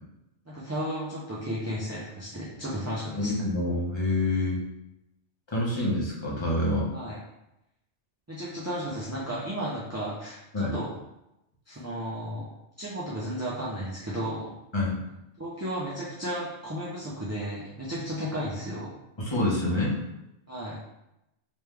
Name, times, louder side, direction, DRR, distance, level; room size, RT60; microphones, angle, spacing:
voice 1, 0.5-3.4 6.9-7.2 8.3-10.9 11.7-12.4 12.8-14.5 15.4-18.9 20.5-20.8, equal, 20° right, -8 dB, 0.4 m, -34 dB
voice 2, 3.1-4.6 5.5-6.9 10.5-10.7 14.7-14.9 19.2-20.0, left 1 dB, 25° left, -5 dB, 0.9 m, -27 dB
3.4 x 3.1 x 3.3 m, 0.88 s
omnidirectional pair, 1.3 m